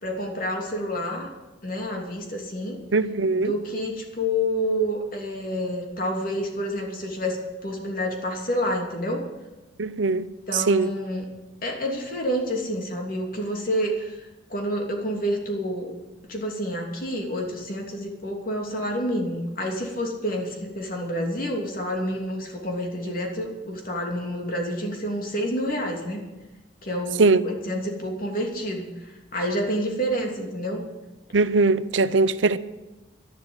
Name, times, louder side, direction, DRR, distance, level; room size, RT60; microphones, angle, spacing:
voice 1, 0.0-1.3 1.6-2.8 3.3-9.3 10.5-11.3 11.6-15.9 16.3-26.2 26.8-30.8, equal, 50° left, 3.0 m, -28 dB
voice 2, 2.9-3.5 9.8-10.3 10.7-10.9 27.2-27.4 31.3-32.6, right 3 dB, 85° right, 0.7 m, -20 dB
12.0 x 11.5 x 8.9 m
head